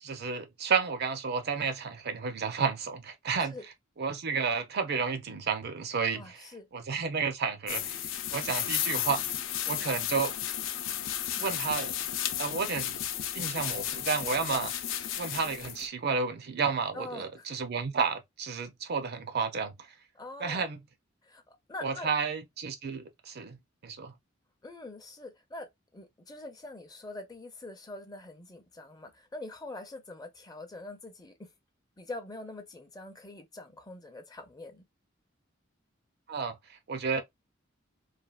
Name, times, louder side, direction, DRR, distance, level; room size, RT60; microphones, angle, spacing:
voice 1, 0.0-3.6 4.0-6.4 6.7-8.0 8.3-9.2 9.7-10.3 11.4-11.9 12.4-13.0 13.3-14.7 15.2-19.7 20.4-20.8 21.8-23.6 23.8-24.1 36.3-36.6 36.9-37.2, right 5 dB, 55° right, 0.5 m, -31 dB
voice 2, 6.1-6.7 16.9-17.5 20.1-20.6 21.2-22.1 24.6-25.7 25.9-31.5 32.0-34.8, left 2 dB, 20° left, 0.6 m, -44 dB
sound 1, 7.7-15.9, left 10 dB, 70° left, 0.4 m, -33 dB
3.1 x 2.2 x 2.3 m
head